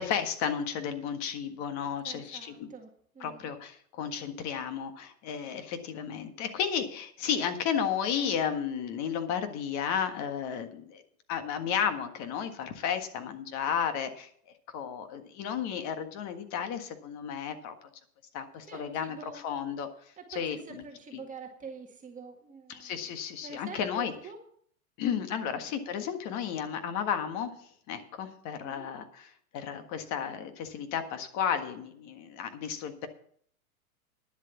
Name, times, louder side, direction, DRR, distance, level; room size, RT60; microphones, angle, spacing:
voice 1, 0.0-2.7 3.2-11.0 11.3-14.3 14.7-17.7 18.3-19.9 20.3-20.8 21.1-21.2 22.7-24.1 25.0-33.1, left 8 dB, 40° left, 8 dB, 1.6 m, -33 dB
voice 2, 2.0-2.9 3.1-3.5 18.7-19.4 20.2-22.9 23.4-24.4 25.4-25.6 28.6-28.9, right 5 dB, 15° right, 2 dB, 1.9 m, -46 dB
10.5 x 7.6 x 7.1 m, 0.62 s
hypercardioid pair, 120°, 44 cm